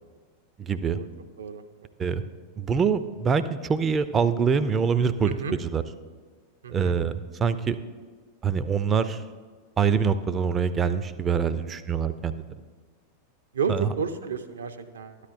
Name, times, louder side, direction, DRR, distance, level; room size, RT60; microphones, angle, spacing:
voice 1, 0.6-1.0 2.0-2.2 2.6-5.3 5.6-5.8 6.7-7.1 7.4-7.8 8.4-9.2 9.8-12.4 13.7-13.9, right 6 dB, 20° right, 13 dB, 0.4 m, -24 dB
voice 2, 5.3-5.6 6.6-7.0 13.5-15.2, right 6 dB, 70° right, 8 dB, 0.6 m, -31 dB
12.5 x 9.9 x 2.6 m, 1.5 s
figure-of-eight pair, 90°, 0 cm